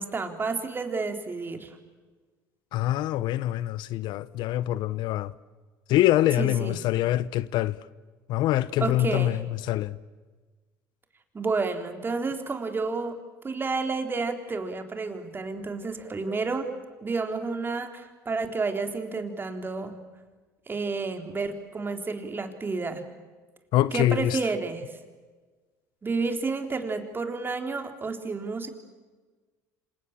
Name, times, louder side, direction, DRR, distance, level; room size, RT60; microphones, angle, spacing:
voice 1, 0.0-1.7 6.4-6.8 8.8-9.4 11.3-13.2 13.4-16.7 17.0-20.0 20.7-23.0 23.9-24.8 26.0-28.7, right 4 dB, 25° right, 3.7 m, -30 dB
voice 2, 2.7-5.3 5.9-7.8 8.3-9.4 9.7-10.0 23.7-24.4, left 14 dB, 65° left, 0.8 m, -24 dB
27.0 x 26.5 x 7.5 m
supercardioid pair, 85°, 8 cm